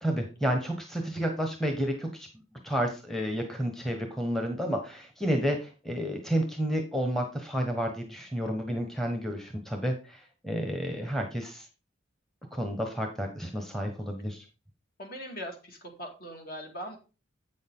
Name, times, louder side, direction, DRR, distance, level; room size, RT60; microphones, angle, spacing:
voice 1, 0.0-2.3 2.6-11.7 12.5-14.4, equal, ahead, 3 dB, 1.1 m, -31 dB
voice 2, 15.0-17.0, equal, 50° left, 2 dB, 2.1 m, -41 dB
8.2 x 6.4 x 3.7 m, 0.31 s
head